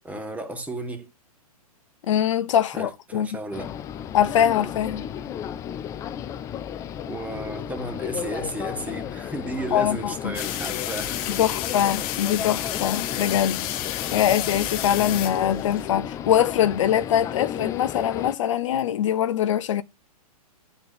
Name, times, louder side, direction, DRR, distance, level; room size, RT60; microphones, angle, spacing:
voice 1, 0.0-1.1 2.7-3.7 5.0-5.1 7.0-11.5, right 2 dB, 10° right, 1.5 m, -34 dB
voice 2, 2.1-3.3 4.1-5.0 9.7-10.3 11.4-13.7 14.1-19.8, left 10 dB, 55° left, 0.7 m, -23 dB
sound 1, 3.5-18.4, left 9 dB, 15° left, 0.4 m, -33 dB
sound 2, 10.3-15.8, left 12 dB, 35° left, 1.1 m, -31 dB
9.3 x 4.2 x 6.7 m
hypercardioid pair, 120°, 19 cm